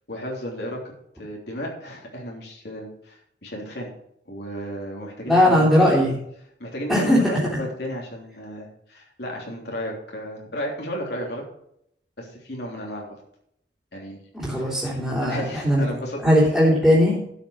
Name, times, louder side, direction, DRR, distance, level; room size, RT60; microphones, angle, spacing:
voice 1, 0.1-0.8 1.2-3.9 4.3-5.9 6.6-11.4 12.2-13.1 13.9-14.2 14.5-14.7 15.2-16.2, equal, 65° left, -2 dB, 3.3 m, -33 dB
voice 2, 5.3-6.2 6.9-7.6 14.3-15.8 16.2-17.2, equal, ahead, -9 dB, 3.1 m, -19 dB
12.0 x 5.8 x 6.4 m, 0.72 s
head